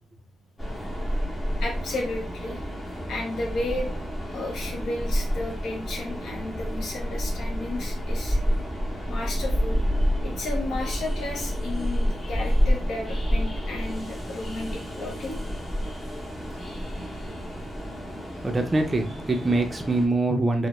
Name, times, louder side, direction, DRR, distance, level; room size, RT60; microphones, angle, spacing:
Train, 0.6-20.1, equal, 20° left, 0.9 m, -29 dB
voice 1, 1.6-2.6 3.1-4.0 4.3-8.4 9.1-9.8 10.2-15.4 16.5-16.6, left 2 dB, 70° left, 0 dB, 0.9 m, -33 dB
voice 2, 18.4-20.7, right 2 dB, 20° right, 3 dB, 0.5 m, -24 dB
2.1 x 2.0 x 3.0 m, 0.34 s
cardioid pair, 90°, 0 cm